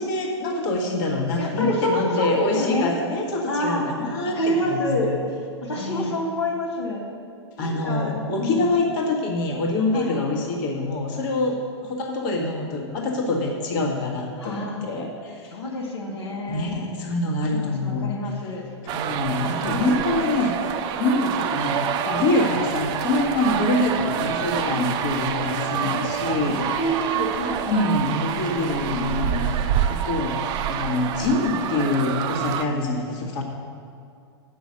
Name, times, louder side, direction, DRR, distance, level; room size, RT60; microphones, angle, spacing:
voice 1, 0.0-5.2 5.7-6.1 7.6-15.5 16.5-18.3 18.9-21.8 22.0-26.6 27.7-29.6 29.9-30.4 30.7-33.4, left 2 dB, 45° left, 0 dB, 1.7 m, -25 dB
voice 2, 1.4-2.9 3.5-3.8 4.2-5.1 5.6-7.0 7.6-8.7 9.9-10.2 14.4-14.8 15.5-16.7 17.5-18.6 19.6-20.1 24.6-24.9 25.4-26.1 26.4-27.9 28.9-29.6, left 1 dB, 70° left, -3 dB, 1.5 m, -28 dB
sound 1, 18.9-32.6, right 9 dB, 30° right, 0.5 m, -27 dB
8.3 x 6.2 x 7.9 m, 2.3 s
figure-of-eight pair, 105°, 15 cm